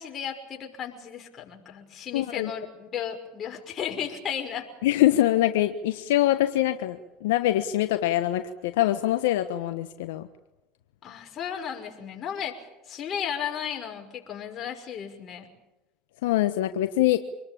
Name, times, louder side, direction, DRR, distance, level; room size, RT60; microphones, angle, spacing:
voice 1, 0.0-4.7 11.0-12.6 12.9-15.5, left 8 dB, 40° left, 3 dB, 6.0 m, -34 dB
voice 2, 2.1-2.5 4.8-10.3 16.2-17.2, left 14 dB, 80° left, 8 dB, 1.3 m, -24 dB
26.5 x 21.0 x 8.7 m, 0.97 s
hypercardioid pair, 90°, 0 cm